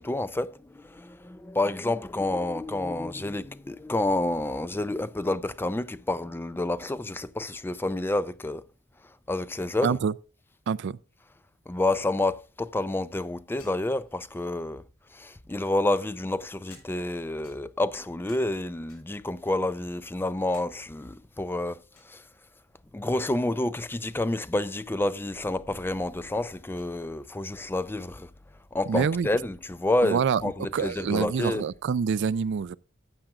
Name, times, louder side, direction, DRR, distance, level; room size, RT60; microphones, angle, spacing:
voice 1, 0.0-8.6 9.3-10.0 11.7-14.8 15.1-22.2 22.9-28.3 28.7-31.6, left 2 dB, 10° left, 0.4 m, -29 dB
voice 2, 9.8-10.1 10.7-11.0 28.9-29.3 30.0-30.4 30.7-32.8, right 6 dB, 55° right, 0.4 m, -26 dB
sound 1, 13.6-14.7 15.6-17.2 17.4-18.6 18.9-19.3 19.7-20.7 21.0-21.1 21.9-22.2 23.6-24.0 24.2-24.3 24.5-24.7 25.5-25.6 26.7-26.9 28.6-28.7 29.1-30.2, left 3 dB, 85° left, 6.5 m, -58 dB
14.5 x 9.0 x 2.4 m
head